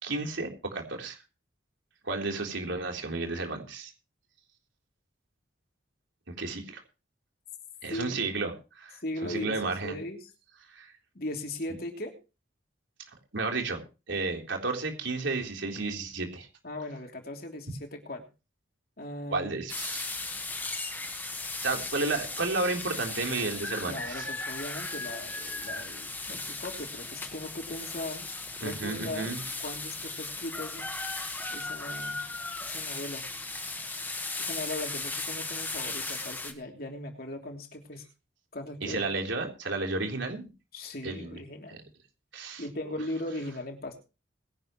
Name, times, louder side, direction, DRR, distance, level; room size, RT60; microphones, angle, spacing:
voice 1, 0.0-1.2 2.0-3.9 6.3-6.8 7.8-10.0 10.7-10.9 13.3-13.8 14.1-16.5 19.3-20.1 21.6-24.3 28.6-29.4 38.8-40.5 41.0-41.4 41.7-41.8 42.3-42.6, right 3 dB, 80° right, 2 dB, 3.7 m, -32 dB
voice 2, 7.9-8.3 9.0-10.3 11.1-12.1 16.6-18.3 19.0-19.6 23.9-28.3 28.6-30.9 31.5-32.2 32.6-33.2 34.4-38.0 38.5-39.1 40.7-41.8 42.6-44.0, left 1 dB, 50° left, 3 dB, 3.1 m, -38 dB
sound 1, 19.7-36.5, left 3 dB, 10° left, 1.4 m, -36 dB
21.0 x 11.0 x 3.1 m, 0.31 s
head